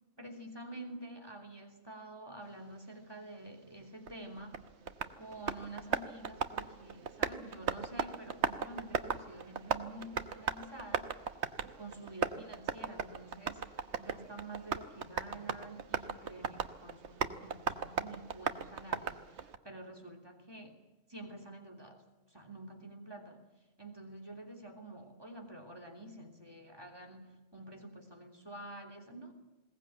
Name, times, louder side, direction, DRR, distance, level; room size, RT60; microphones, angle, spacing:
voice 1, 0.2-4.7 5.2-11.2 11.8-20.8 21.1-23.4 23.8-29.3, right 2 dB, 20° right, 5 dB, 3.1 m, -48 dB
Tap, 4.1-19.6, right 6 dB, 60° right, 1.3 m, -38 dB
21.5 x 18.5 x 8.9 m, 1.1 s
omnidirectional pair, 1.3 m